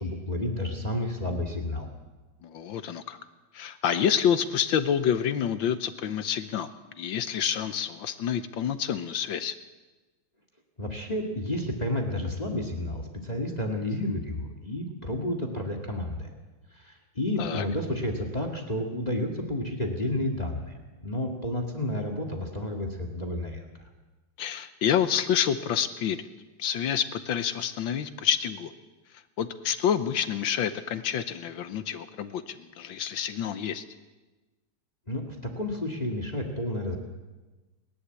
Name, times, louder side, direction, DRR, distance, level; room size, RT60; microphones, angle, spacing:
voice 1, 0.0-1.9 10.8-16.3 16.7-20.7 21.0-23.6 35.1-37.0, left 1 dB, 20° left, 4 dB, 2.0 m, -31 dB
voice 2, 2.4-3.2 3.5-9.5 17.4-17.6 24.4-26.2 26.6-28.7 29.4-33.8, left 8 dB, 70° left, 12 dB, 1.5 m, -28 dB
28.0 x 11.5 x 8.2 m, 1.2 s
omnidirectional pair, 2.3 m